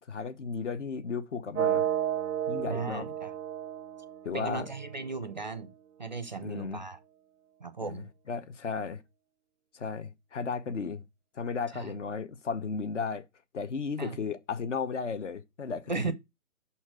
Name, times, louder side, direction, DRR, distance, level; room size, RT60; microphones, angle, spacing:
voice 1, 0.1-1.9 2.5-3.1 4.2-4.7 6.4-6.8 7.8-9.0 9.7-11.0 11.4-13.2 13.5-16.1, left 5 dB, 50° left, 0.9 m, -34 dB
sound 1, 1.5-5.5, right 10 dB, 80° right, 0.6 m, -32 dB
voice 2, 2.7-3.3 4.3-5.7 6.0-7.0 7.6-8.1 11.7-11.9 14.0-14.2 15.9-16.1, right 4 dB, 30° right, 0.5 m, -36 dB
5.6 x 4.4 x 6.1 m
figure-of-eight pair, 150°, 45 cm